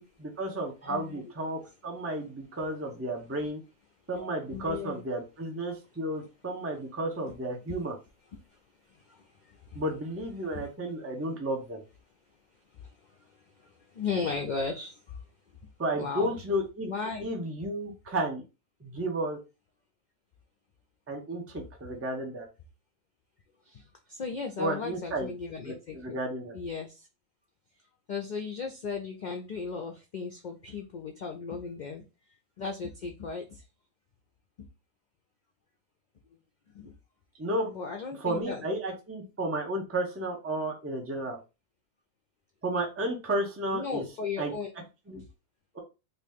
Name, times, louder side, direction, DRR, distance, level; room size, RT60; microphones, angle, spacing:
voice 1, 0.0-3.6 4.1-8.0 9.7-11.8 15.8-16.9 17.2-18.4 18.8-19.4 21.1-22.5 24.6-25.3 25.6-26.5 37.4-37.7 38.2-41.4 42.6-44.0 44.4-44.5 45.1-45.2, right 1 dB, 15° right, 0.6 m, -32 dB
voice 2, 0.8-1.2 4.1-5.0 9.1-9.8 10.5-10.7 13.6-15.0 15.9-16.3 16.9-17.3 23.7-23.8 24.1-26.0 26.5-27.1 28.1-32.0 32.6-33.6 36.7-36.9 37.6-38.6 43.7-44.7 45.2-45.3, left 5 dB, 90° left, 0.4 m, -36 dB
2.9 x 2.7 x 3.5 m
omnidirectional pair, 1.4 m